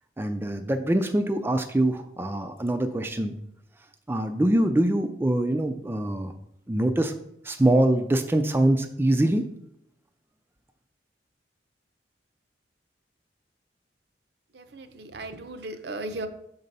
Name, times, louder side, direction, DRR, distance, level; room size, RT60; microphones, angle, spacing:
voice 1, 0.2-3.3 4.1-6.3 6.7-7.1 7.4-9.4, right 1 dB, 15° right, 7 dB, 0.4 m, -24 dB
voice 2, 14.5-16.3, right 2 dB, 65° right, 9 dB, 0.7 m, -36 dB
6.5 x 4.0 x 5.3 m, 0.74 s
head